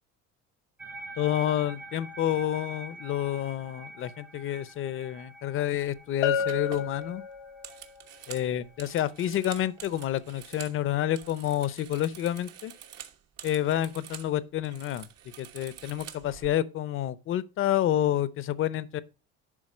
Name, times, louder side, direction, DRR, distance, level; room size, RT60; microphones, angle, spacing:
sound 1, 0.8-11.4, right 2 dB, 5° right, 0.7 m, -47 dB
voice 1, 1.2-7.2 8.3-12.7 13.4-15.1 15.4-19.0, left 12 dB, 45° left, 0.6 m, -29 dB
sound 2, 5.8-6.0 6.4-10.8 11.1-14.3 14.6-16.5, right 10 dB, 60° right, 1.2 m, -47 dB
Bell, 6.2-7.9, left 7 dB, 80° left, 0.7 m, -30 dB
11.0 x 3.8 x 4.9 m
cardioid pair, 140°, 29 cm